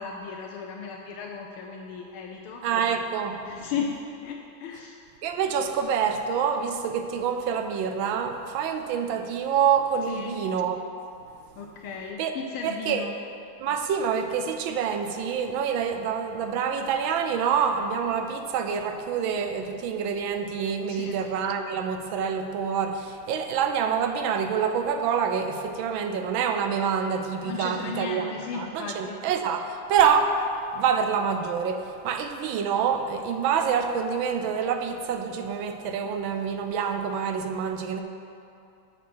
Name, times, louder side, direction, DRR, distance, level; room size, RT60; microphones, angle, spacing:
voice 1, 0.0-2.7 3.4-5.0 10.1-10.4 11.6-13.2 20.9-21.2 27.5-29.2, left 5 dB, 80° left, 1 dB, 1.5 m, -35 dB
voice 2, 2.6-3.4 5.2-10.8 12.2-12.3 12.6-13.1 13.6-28.3 28.5-30.4 30.7-38.0, right 7 dB, 75° right, 7 dB, 1.2 m, -26 dB
9.2 x 5.4 x 6.1 m, 2.6 s
omnidirectional pair, 2.4 m